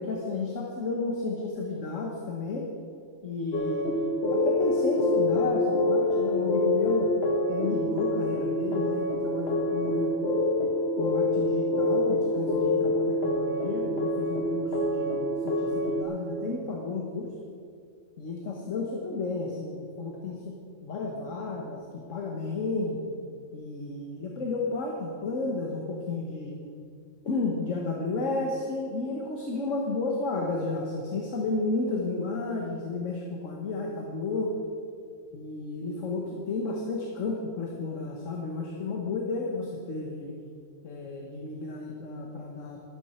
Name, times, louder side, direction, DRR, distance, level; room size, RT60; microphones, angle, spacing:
voice 1, 0.0-2.7 3.2-7.1 7.5-10.1 11.0-17.3 18.2-20.4 20.8-23.0 23.5-26.6 27.2-34.5 35.3-40.3 40.8-42.8, left 3 dB, 80° left, 0 dB, 1.6 m, -32 dB
sound 1, 3.5-16.0, left 2 dB, 55° left, 1.4 m, -26 dB
13.5 x 12.0 x 4.4 m, 2.3 s
omnidirectional pair, 1.3 m